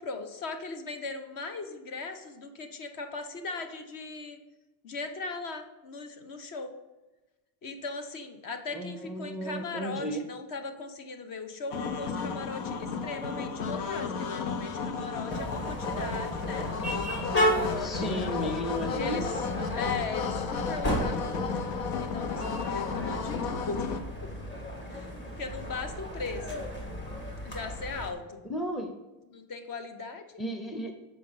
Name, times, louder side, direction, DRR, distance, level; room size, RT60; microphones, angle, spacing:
voice 1, 0.0-4.4 4.8-6.7 7.6-16.7 17.2-18.6 18.9-21.6 22.0-23.9 24.2-24.3 24.9-26.7 27.4-28.4 29.3-30.3, left 3 dB, 45° left, 7 dB, 1.2 m, -39 dB
voice 2, 8.7-10.2 17.8-19.4 28.5-28.9 30.4-30.9, equal, ahead, 3 dB, 0.5 m, -34 dB
sound 1, 11.7-24.0, left 5 dB, 90° left, 1.0 m, -33 dB
sound 2, 15.3-28.1, equal, 25° left, 1.8 m, -34 dB
7.5 x 5.1 x 5.6 m, 1.1 s
cardioid pair, 125°, 46 cm